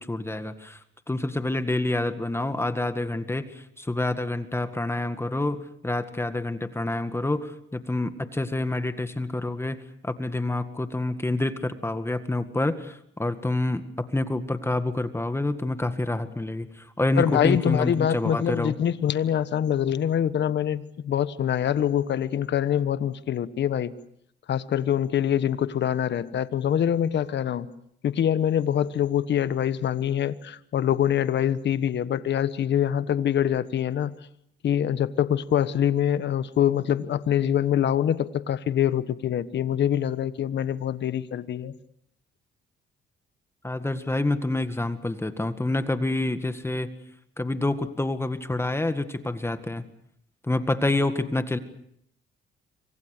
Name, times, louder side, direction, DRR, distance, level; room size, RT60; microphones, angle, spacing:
voice 1, 0.1-9.8 10.0-18.7 43.6-46.9 47.4-49.8 50.4-51.6, left 2 dB, 10° left, 9 dB, 1.9 m, -27 dB
voice 2, 17.2-23.9 24.5-27.7 28.0-34.1 34.6-41.7, left 10 dB, 60° left, 14 dB, 1.3 m, -24 dB
27.5 x 25.5 x 6.7 m, 0.70 s
cardioid pair, 90°, 20 cm